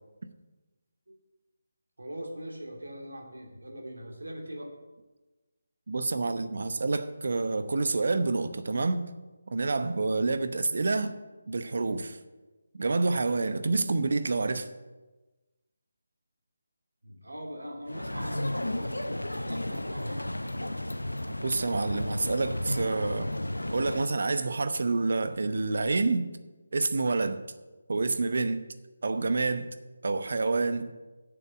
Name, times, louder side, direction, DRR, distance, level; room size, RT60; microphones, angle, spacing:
voice 1, 2.0-4.7 17.0-20.2, equal, 75° right, 1 dB, 2.7 m, -41 dB
voice 2, 5.9-9.0 9.5-11.1 11.5-12.2 12.8-14.7 21.4-23.3 23.7-26.3 26.7-27.4 27.9-28.6 29.0-29.7 30.0-30.9, right 3 dB, 55° right, 10 dB, 0.9 m, -28 dB
sound 1, 17.9-24.1, left 1 dB, 85° left, 0.6 m, -33 dB
8.3 x 7.0 x 8.5 m, 1.2 s
figure-of-eight pair, 155°, 0 cm